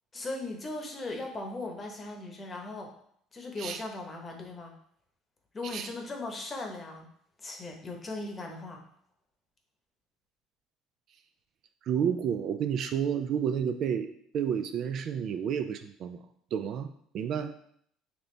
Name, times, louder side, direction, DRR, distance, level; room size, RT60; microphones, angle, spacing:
voice 1, 0.1-2.9 3.3-4.7 5.5-7.1 7.4-8.8, left 2 dB, 30° left, 2 dB, 0.9 m, -38 dB
voice 2, 11.8-16.2 16.5-16.9 17.1-17.5, right 8 dB, 55° right, 9 dB, 0.3 m, -30 dB
4.2 x 2.7 x 3.2 m, 0.66 s
supercardioid pair, 95°, 0 cm